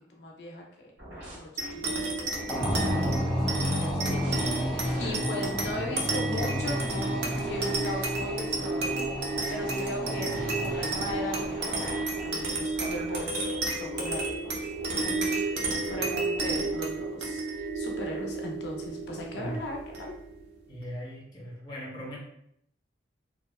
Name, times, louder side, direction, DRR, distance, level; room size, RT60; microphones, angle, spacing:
voice 1, 0.1-13.4 13.7-14.2 14.9-15.4 15.9-20.1, left 1 dB, 65° left, 0 dB, 0.5 m, -38 dB
sound 1, 1.0-5.8 6.3-9.5 10.1-16.8, right 1 dB, 90° right, 1.0 m, -45 dB
sound 2, 1.6-20.4, right 3 dB, 60° right, 0.4 m, -32 dB
sound 3, 2.5-12.4, equal, ahead, 0.3 m, -32 dB
voice 2, 4.9-5.3 19.3-19.6 20.7-22.2, equal, 25° left, -5 dB, 0.7 m, -39 dB
2.8 x 2.0 x 2.2 m, 0.72 s
head